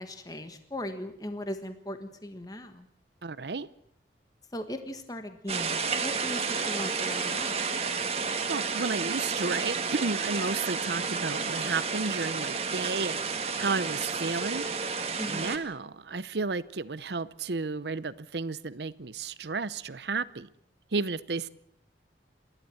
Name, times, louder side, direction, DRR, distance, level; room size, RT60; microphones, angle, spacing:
voice 1, 0.0-2.9 4.5-7.6 15.2-15.6, left 1 dB, 20° left, 1.4 m, -38 dB
voice 2, 3.2-3.7 8.5-14.6 15.2-20.5 20.9-21.5, right 4 dB, 70° right, 0.8 m, -32 dB
sound 1, 5.5-15.6, right 5 dB, 35° right, 1.8 m, -31 dB
28.5 x 12.0 x 7.8 m
head